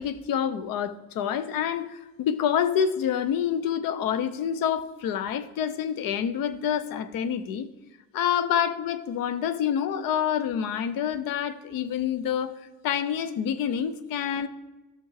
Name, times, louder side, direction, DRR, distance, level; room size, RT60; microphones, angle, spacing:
voice 1, 0.0-7.7 8.1-12.5 12.8-14.5, left 8 dB, 65° left, 13 dB, 0.9 m, -27 dB
14.0 x 6.3 x 4.8 m, 1.1 s
cardioid pair, 140°, 37 cm